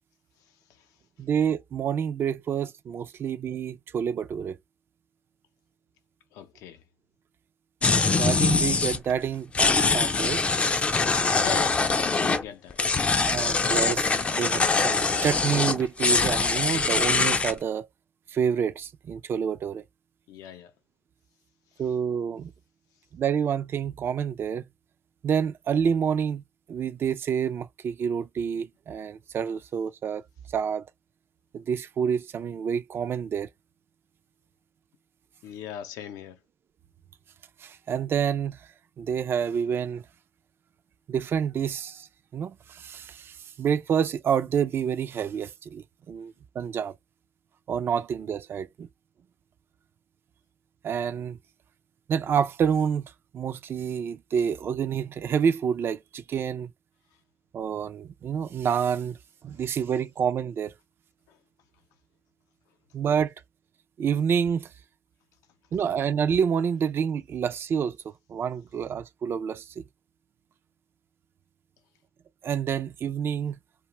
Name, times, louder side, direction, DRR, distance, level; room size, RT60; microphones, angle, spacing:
voice 1, 1.2-4.6 8.2-10.4 13.3-17.9 18.3-19.8 21.8-22.5 23.1-24.6 25.2-26.4 26.7-30.2 30.5-30.9 31.5-33.5 37.6-38.7 39.0-40.0 41.1-42.1 42.3-46.9 47.7-48.9 50.8-51.4 52.1-56.7 57.5-59.2 59.4-60.7 62.9-63.3 64.0-64.7 65.7-68.0 68.3-69.8 72.4-73.6, right 7 dB, 40° right, 0.4 m, -28 dB
voice 2, 6.3-6.8 11.4-11.8 12.2-12.8 20.3-20.7 35.4-36.4 61.3-61.4, left 9 dB, 80° left, 0.6 m, -39 dB
sound 1, 7.8-9.0 9.5-12.4 12.7-17.5, left 4 dB, 20° left, 0.4 m, -23 dB
2.5 x 2.2 x 2.9 m
cardioid pair, 115°, 6 cm